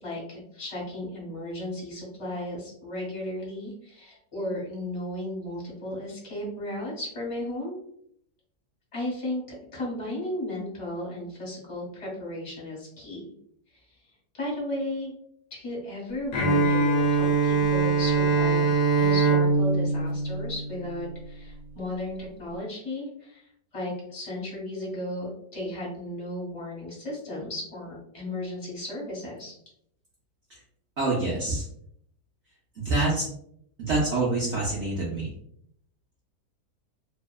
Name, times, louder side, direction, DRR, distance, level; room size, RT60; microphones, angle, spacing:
voice 1, 0.0-7.8 8.9-9.4 9.7-13.3 13.7-13.9 14.3-15.2 15.5-29.5, left 1 dB, 30° left, -4 dB, 0.6 m, -35 dB
Bowed string instrument, 16.3-21.2, right 4 dB, 90° left, 1.2 m, -23 dB
voice 2, 31.0-31.7 32.8-33.3 33.8-35.3, right 2 dB, 80° right, -4 dB, 0.6 m, -26 dB
2.7 x 2.1 x 2.2 m, 0.69 s
omnidirectional pair, 1.8 m